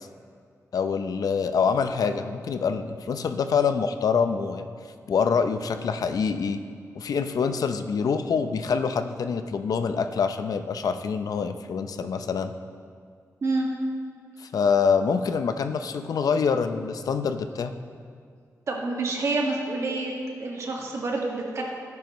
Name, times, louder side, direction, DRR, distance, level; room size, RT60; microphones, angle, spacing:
voice 1, 0.7-4.7 5.1-6.6 6.9-12.5 14.4-17.7, left 6 dB, 85° left, 9 dB, 0.6 m, -25 dB
voice 2, 18.7-20.1 20.4-21.6, right 3 dB, 55° right, -1 dB, 1.8 m, -27 dB
17.5 x 9.5 x 3.1 m, 2.2 s
wide cardioid pair, 150°, 6 cm